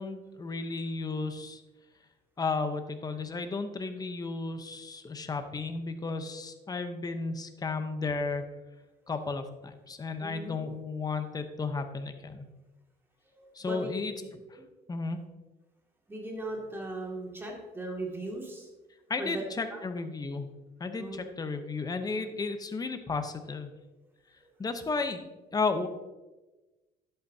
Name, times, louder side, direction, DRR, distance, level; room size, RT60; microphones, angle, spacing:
voice 1, 0.0-1.6 2.4-8.4 9.1-12.4 13.5-14.1 14.9-15.2 19.1-20.5 20.8-23.7 24.6-25.9, left 4 dB, 20° left, 7 dB, 0.8 m, -33 dB
voice 2, 10.2-10.6 13.4-14.6 16.1-18.7 19.2-19.8 21.0-21.2, right 1 dB, 15° right, -2 dB, 2.2 m, -38 dB
11.0 x 8.0 x 2.8 m, 1.1 s
cardioid pair, 110°, 17 cm